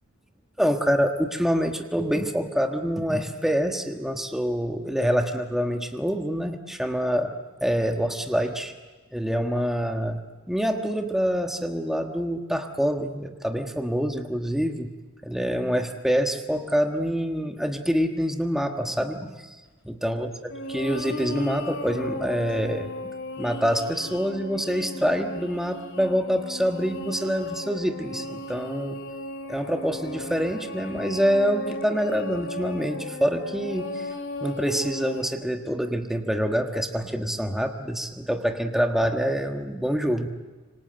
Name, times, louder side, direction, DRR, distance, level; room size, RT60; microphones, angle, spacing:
voice 1, 0.6-7.4 7.6-8.7 9.1-10.2 10.5-14.9 15.2-19.5 19.8-20.3 20.7-22.9 23.4-29.0 29.5-34.1 34.4-40.3, equal, ahead, 4 dB, 1.4 m, -26 dB
sound 1, 20.5-35.2, left 1 dB, 60° left, 3.1 m, -36 dB
26.5 x 24.5 x 7.9 m, 1.3 s
head